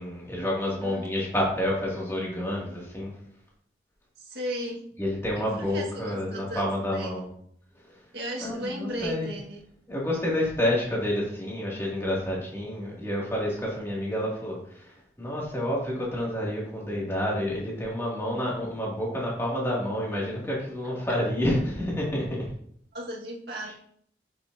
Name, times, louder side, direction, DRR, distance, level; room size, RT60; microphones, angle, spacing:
voice 1, 0.0-3.1 5.0-7.3 8.4-9.3 9.9-22.5 23.7-23.8, left 1 dB, 15° left, -4 dB, 2.5 m, -29 dB
voice 2, 4.2-4.9 5.3-7.2 8.1-9.6 22.9-23.7, right 1 dB, 70° right, -2 dB, 1.8 m, -36 dB
8.1 x 7.4 x 2.8 m, 0.66 s
head